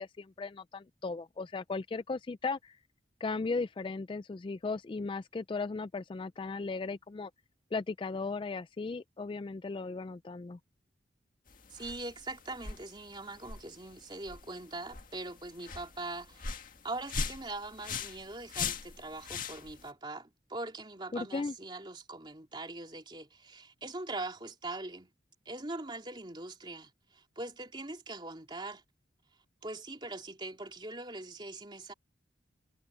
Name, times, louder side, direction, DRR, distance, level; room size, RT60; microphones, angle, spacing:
voice 1, 0.0-2.8 3.2-7.3 7.7-10.6 21.1-21.5, left 4 dB, 25° left, 0.3 m, -36 dB
Woosh Miss Close (raw), 11.5-19.9, left 5 dB, 45° left, 2.0 m, -41 dB
voice 2, 11.7-16.5 16.8-25.1 25.4-28.8 29.6-31.9, right 2 dB, 25° right, 3.1 m, -42 dB
head